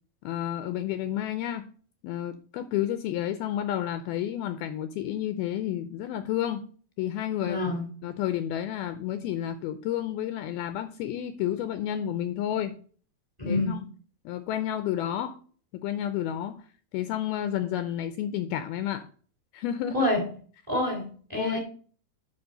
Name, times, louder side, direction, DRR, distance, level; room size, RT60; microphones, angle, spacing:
voice 1, 0.2-1.7 2.0-6.7 7.0-7.6 8.0-12.8 13.5-13.9 14.3-15.4 15.7-16.6 16.9-19.1 19.5-20.1 21.3-21.6, left 11 dB, 80° left, 11 dB, 2.3 m, -31 dB
voice 2, 7.4-7.9 13.4-13.8 19.9-20.2 20.7-21.6, left 2 dB, 10° right, 2 dB, 2.1 m, -27 dB
7.0 x 6.0 x 6.7 m, 0.43 s
omnidirectional pair, 4.8 m